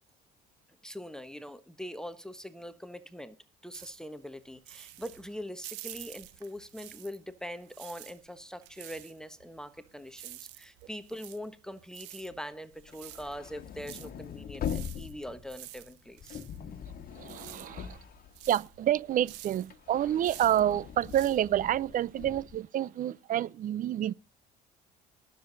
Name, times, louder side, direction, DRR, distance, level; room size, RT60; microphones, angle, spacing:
voice 1, 0.8-3.4 3.6-16.4, equal, 5° left, 1.2 m, -42 dB
sound 1, 3.7-7.3 7.6-22.2, right 15 dB, 80° right, 1.0 m, -49 dB
sound 2, 12.8-18.9 19.3-22.6, left 8 dB, 55° left, 1.6 m, -42 dB
voice 2, 17.2-18.0 18.5-24.1, right 11 dB, 50° right, 0.5 m, -28 dB
19.5 x 7.5 x 3.9 m
supercardioid pair, 75°, 18 cm